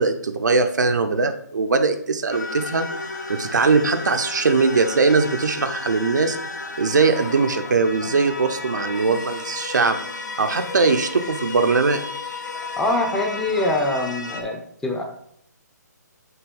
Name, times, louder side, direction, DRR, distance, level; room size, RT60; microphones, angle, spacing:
voice 1, 0.0-2.9 3.3-6.4 6.8-10.0 10.4-12.0, right 4 dB, 75° right, 7 dB, 0.8 m, -20 dB
sound 1, 2.3-14.4, left 3 dB, 80° left, 1.3 m, -33 dB
voice 2, 12.7-15.0, left 2 dB, 5° left, 2 dB, 0.7 m, -24 dB
6.0 x 3.1 x 5.3 m, 0.67 s
hypercardioid pair, 145°, 10 cm